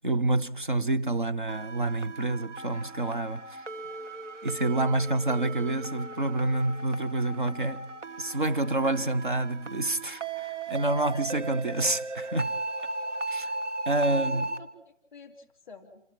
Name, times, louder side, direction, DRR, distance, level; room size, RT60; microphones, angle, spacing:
voice 1, 0.0-3.6 4.4-7.9 8.2-12.5 13.3-13.5 13.9-14.5, right 2 dB, 45° right, 0.8 m, -28 dB
sound 1, 1.5-14.6, right 3 dB, 80° right, 1.9 m, -37 dB
voice 2, 11.0-11.4 14.1-16.0, left 3 dB, 20° left, 3.0 m, -48 dB
27.5 x 13.0 x 7.6 m
figure-of-eight pair, 175°, 36 cm